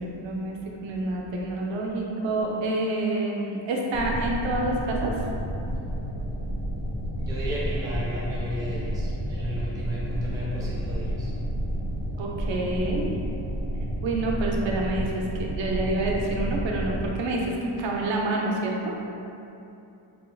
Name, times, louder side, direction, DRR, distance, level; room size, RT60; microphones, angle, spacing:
voice 1, 0.0-5.1 12.2-13.1 14.0-19.0, right 2 dB, 80° right, -1 dB, 0.5 m, -28 dB
sound 1, 3.9-17.2, right 1 dB, 65° left, 0.6 m, -31 dB
voice 2, 7.2-11.3, equal, 10° right, -7 dB, 0.4 m, -33 dB
3.1 x 3.0 x 2.2 m, 2.7 s
wide cardioid pair, 165°, 45 cm